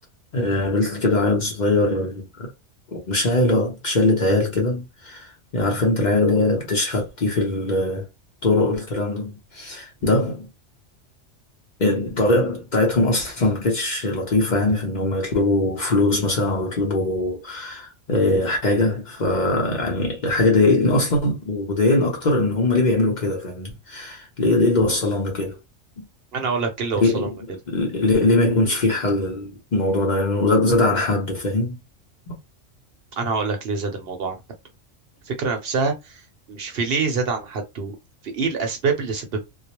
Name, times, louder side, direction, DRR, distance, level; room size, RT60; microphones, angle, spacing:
voice 1, 0.3-2.2 2.9-8.1 8.4-10.5 11.8-25.6 26.0-26.1 27.0-31.8 32.3-32.4, left 2 dB, 45° left, 0.8 m, -21 dB
voice 2, 26.3-27.3 33.2-34.4 35.3-36.2 36.5-38.0 38.2-39.4, right 4 dB, 60° right, 0.8 m, -25 dB
2.3 x 2.0 x 2.9 m
omnidirectional pair, 1.2 m